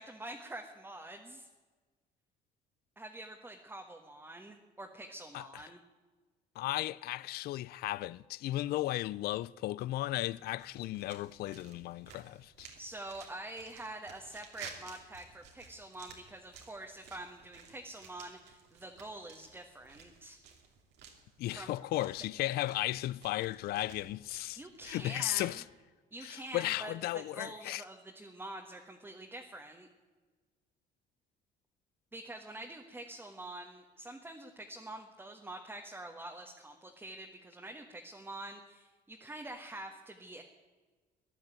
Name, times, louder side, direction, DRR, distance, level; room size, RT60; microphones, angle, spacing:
voice 1, 0.0-1.5 3.0-5.8 12.8-20.4 21.5-21.7 24.6-25.6 26.1-29.9 32.1-40.4, right 1 dB, 10° right, 1.4 m, -46 dB
voice 2, 6.6-12.7 21.4-25.6 26.2-27.8, left 16 dB, 65° left, 0.4 m, -35 dB
sound 1, 10.6-25.6, right 6 dB, 85° right, 2.7 m, -55 dB
14.5 x 11.0 x 9.0 m
cardioid pair, 110°, 17 cm